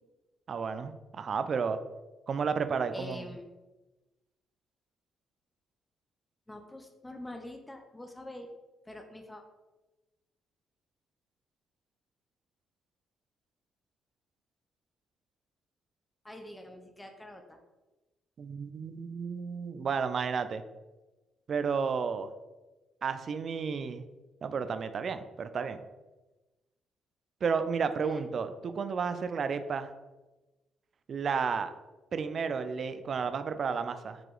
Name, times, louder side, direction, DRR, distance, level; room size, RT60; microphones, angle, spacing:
voice 1, 0.5-1.8 2.3-3.2 18.4-20.6 21.5-22.3 23.0-24.0 24.4-25.8 27.4-29.9 31.1-31.7 32.1-34.2, right 5 dB, 50° right, 10 dB, 0.4 m, -32 dB
voice 2, 2.9-3.4 6.5-8.5 8.9-9.4 16.2-17.6 28.0-28.2, left 1 dB, 10° left, 4 dB, 0.6 m, -45 dB
4.8 x 2.9 x 3.9 m, 1.1 s
cardioid pair, 90°, 0 cm